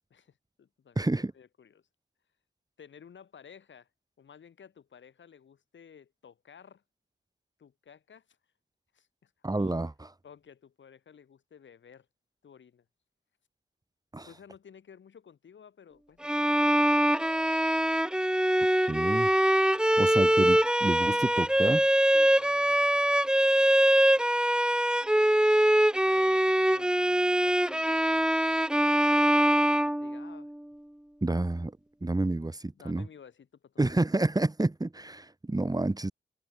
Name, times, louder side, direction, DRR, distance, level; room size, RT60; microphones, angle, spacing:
voice 1, 0.1-1.9 2.8-3.9 4.2-6.8 7.6-8.4 8.9-9.7 10.2-12.1 12.4-12.8 14.2-16.8 22.1-24.3 26.0-28.3 28.9-30.5 32.7-34.0, left 7 dB, 90° left, 6.9 m, -54 dB
voice 2, 1.0-1.3 9.4-9.9 14.1-14.3 18.8-19.3 20.0-21.9 31.2-33.1 33.8-36.1, right 2 dB, 20° right, 1.4 m, -29 dB
Bowed string instrument, 16.2-30.5, right 1 dB, 5° right, 0.7 m, -23 dB
cardioid pair, 65°, 19 cm